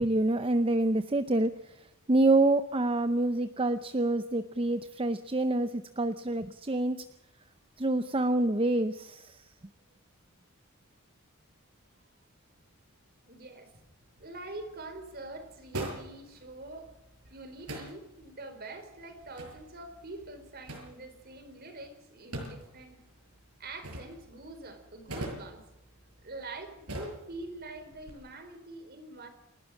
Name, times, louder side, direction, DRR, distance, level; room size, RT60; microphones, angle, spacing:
voice 1, 0.0-1.5 2.1-7.0 7.8-9.3, right 2 dB, 25° right, 11 dB, 0.7 m, -27 dB
voice 2, 13.2-13.7 14.2-16.9 17.3-23.0 23.6-25.6 26.2-29.3, right 2 dB, 45° right, 8 dB, 4.2 m, -45 dB
sound 1, 14.0-28.1, right 1 dB, 85° right, 7.1 m, -45 dB
28.5 x 12.5 x 7.5 m, 0.92 s
head